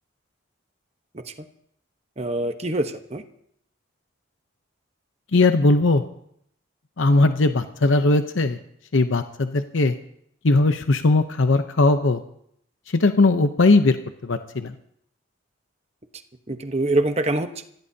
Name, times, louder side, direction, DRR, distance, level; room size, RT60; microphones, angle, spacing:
voice 1, 2.2-3.2 16.5-17.6, right 2 dB, 30° right, 7 dB, 1.0 m, -25 dB
voice 2, 5.3-6.0 7.0-8.6 8.9-10.0 10.4-12.2 12.9-14.0 14.2-14.7, left 2 dB, 75° left, 8 dB, 0.8 m, -19 dB
26.0 x 16.0 x 2.8 m, 0.72 s
head